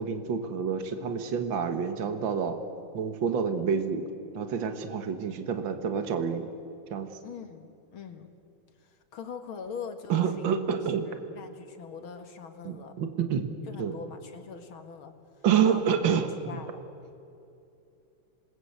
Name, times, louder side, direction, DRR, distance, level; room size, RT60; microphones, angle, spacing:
voice 1, 0.0-2.6 2.9-4.0 4.3-6.5 6.9-7.1 10.1-11.1 12.6-13.5 13.8-13.9 15.4-16.6, right 7 dB, 65° right, 7 dB, 2.2 m, -28 dB
voice 2, 7.2-7.7 7.9-8.3 8.8-10.5 11.0-12.9 13.7-16.0 16.5-16.8, left 6 dB, 75° left, 7 dB, 2.6 m, -42 dB
27.0 x 20.5 x 8.0 m, 2.6 s
omnidirectional pair, 2.3 m